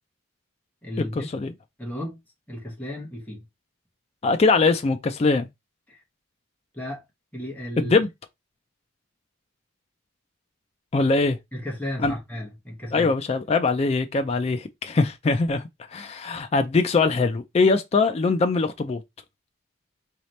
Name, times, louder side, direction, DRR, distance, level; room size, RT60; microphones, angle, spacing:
voice 1, 0.8-1.1 1.8-2.2 2.5-3.4 5.9-6.0 6.7-7.0 7.3-7.9 11.5-13.1, left 1 dB, 10° left, 1.0 m, -34 dB
voice 2, 4.2-5.5 7.8-8.1 10.9-11.4 12.0-12.1 12.9-15.6 15.9-19.0, left 3 dB, 30° left, 0.3 m, -22 dB
4.0 x 2.8 x 3.1 m
head